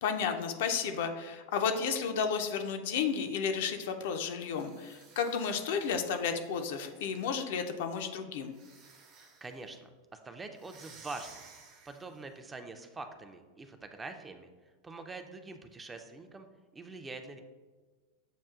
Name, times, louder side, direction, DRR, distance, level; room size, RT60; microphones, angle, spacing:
voice 1, 0.0-8.5, left 6 dB, 65° left, 6 dB, 0.4 m, -32 dB
sound 1, 4.4-7.4 8.5-9.6 10.5-12.3, right 4 dB, 50° right, 0.8 m, -56 dB
voice 2, 9.4-11.4 11.9-14.5 14.8-16.5 16.7-17.4, right 3 dB, 15° right, 7 dB, 0.4 m, -45 dB
7.1 x 2.4 x 2.3 m, 1.3 s
hypercardioid pair, 95°, 0 cm